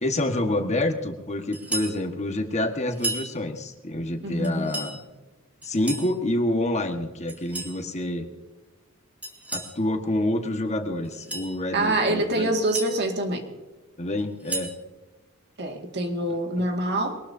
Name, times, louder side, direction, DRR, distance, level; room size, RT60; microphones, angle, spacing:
voice 1, 0.0-5.0 5.6-8.2 9.5-12.5 14.0-14.7 16.6-16.7, left 1 dB, 35° left, 5 dB, 1.6 m, -27 dB
sound 1, 1.5-2.0 2.9-3.3 4.4-4.9 5.6-6.1 7.3-7.8 9.2-9.7 11.0-11.5 12.4-12.9 14.2-14.8, right 2 dB, 5° right, 2.6 m, -33 dB
voice 2, 4.2-4.7 11.7-13.5 15.6-17.2, right 1 dB, 55° right, 4 dB, 2.1 m, -25 dB
22.0 x 19.5 x 2.8 m, 1.2 s
head